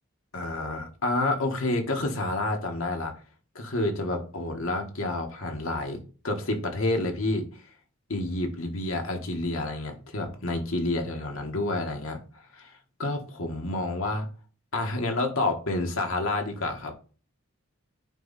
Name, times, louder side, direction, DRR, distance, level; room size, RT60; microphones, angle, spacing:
voice 1, 0.3-3.1 3.5-7.6 8.1-12.7 13.0-14.3 14.7-16.9, left 2 dB, 70° left, 3 dB, 1.4 m, -29 dB
8.9 x 3.1 x 4.0 m, 0.37 s
head